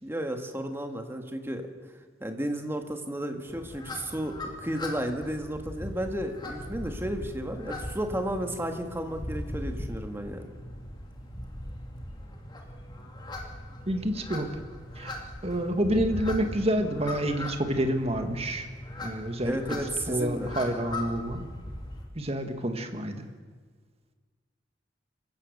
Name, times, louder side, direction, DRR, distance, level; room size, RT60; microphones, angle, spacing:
voice 1, 0.0-1.7 2.2-10.5 19.4-20.5, right 1 dB, 15° right, 5 dB, 1.8 m, -33 dB
sound 1, 3.5-22.0, left 1 dB, 25° left, 2.5 m, -39 dB
voice 2, 13.9-14.5 15.0-18.7 19.0-19.6 20.1-21.5 22.2-23.2, right 1 dB, 30° right, 6 dB, 1.9 m, -28 dB
26.5 x 15.5 x 6.7 m, 1.5 s
head